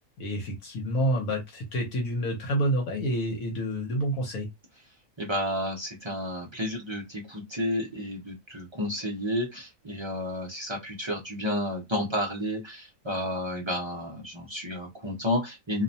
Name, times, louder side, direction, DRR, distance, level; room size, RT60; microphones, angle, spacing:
voice 1, 0.2-4.5, equal, 80° left, 1.2 m, -28 dB
voice 2, 5.2-15.8, left 1 dB, 45° right, 0.3 m, -31 dB
2.6 x 2.1 x 2.7 m
omnidirectional pair, 1.5 m